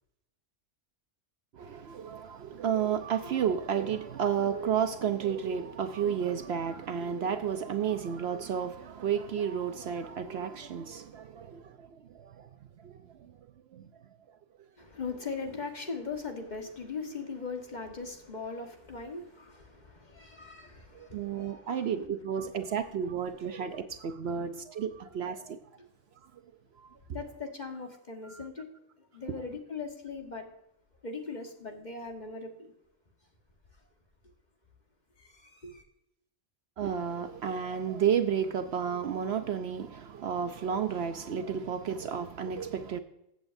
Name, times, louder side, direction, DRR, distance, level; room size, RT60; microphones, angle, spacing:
voice 1, 1.5-12.5 12.8-13.3 13.7-13.9 20.9-25.6 26.8-27.0 28.2-28.5 36.8-43.0, right 8 dB, 65° right, 0.8 m, -32 dB
voice 2, 14.8-21.9 24.3-24.4 27.1-28.7 29.1-30.5 31.0-32.7 35.2-35.8, left 4 dB, 35° left, 1.5 m, -40 dB
14.5 x 8.0 x 2.6 m
omnidirectional pair, 1.3 m